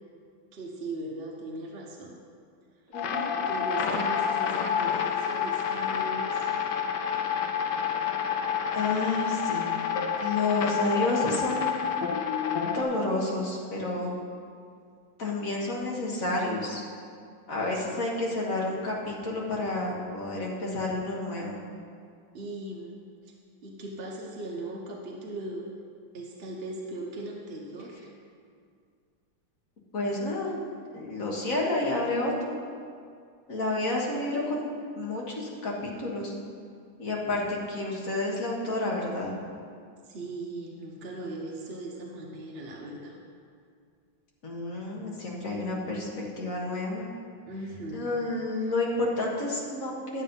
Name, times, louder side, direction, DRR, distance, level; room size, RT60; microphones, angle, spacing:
voice 1, 0.5-2.2 3.5-6.5 22.3-23.0 23.2-23.3 23.6-25.7 26.1-28.0 40.0-43.2 47.5-48.1, right 2 dB, 45° right, -1 dB, 0.8 m, -38 dB
sound 1, 2.9-12.8, left 7 dB, 65° left, 1.2 m, -28 dB
voice 2, 2.9-3.3 8.7-9.7 10.2-11.8 12.7-14.1 15.2-16.8 17.5-21.6 29.9-30.5 30.9-32.6 33.5-34.7 35.0-36.3 37.0-39.4 44.4-46.1 46.4-47.1 47.9-50.2, left 2 dB, 45° left, -3 dB, 1.9 m, -30 dB
11.0 x 7.6 x 5.4 m, 2.3 s
omnidirectional pair, 2.3 m